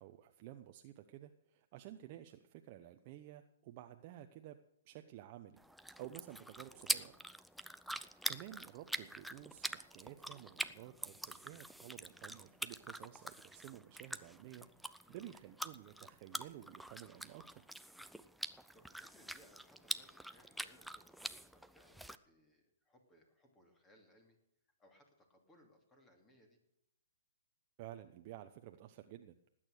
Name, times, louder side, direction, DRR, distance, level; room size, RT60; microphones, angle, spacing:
voice 1, 0.0-4.6 4.8-5.6 6.0-7.1 7.9-17.6 27.8-29.4, right 13 dB, 40° right, 6 dB, 0.8 m, -53 dB
sound 1, 5.6-22.2, right 1 dB, ahead, 0.5 m, -45 dB
voice 2, 18.4-24.4 24.8-26.6, equal, 15° left, 3 dB, 2.7 m, -67 dB
19.0 x 8.9 x 6.5 m, 0.80 s
hypercardioid pair, 140°, 0 cm